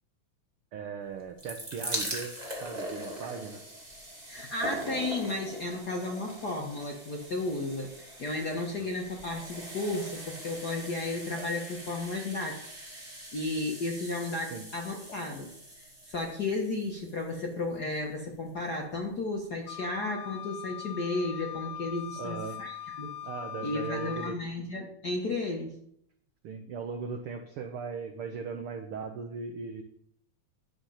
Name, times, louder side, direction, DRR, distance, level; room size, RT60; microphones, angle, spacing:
voice 1, 0.7-2.3 2.6-3.6 14.5-14.7 22.2-22.6 23.2-24.4 26.4-29.8, right 5 dB, 85° right, 6 dB, 1.2 m, -38 dB
sound 1, 1.1-18.2 18.9-19.0 19.2-19.3, right 1 dB, 15° right, 2.3 m, -42 dB
voice 2, 4.3-12.8 13.3-15.5 16.1-23.1 23.6-25.7, left 2 dB, 55° left, 0 dB, 1.1 m, -33 dB
Wind instrument woodwind instrument, 19.7-24.4, left 10 dB, 80° left, 2.6 m, -41 dB
10.0 x 8.0 x 5.6 m, 0.71 s
omnidirectional pair, 3.6 m